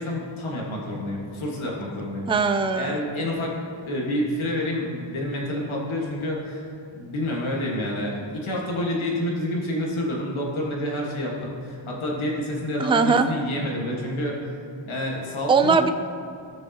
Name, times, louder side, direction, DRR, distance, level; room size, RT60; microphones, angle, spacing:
voice 1, 0.0-2.3 2.7-3.6 3.8-6.7 6.9-14.4 14.8-15.8, left 1 dB, 85° left, -3 dB, 1.7 m, -28 dB
voice 2, 2.3-3.0 12.8-13.3 15.5-15.9, right 4 dB, 10° right, 8 dB, 0.3 m, -20 dB
16.0 x 6.3 x 2.9 m, 2.5 s
wide cardioid pair, 110°, 47 cm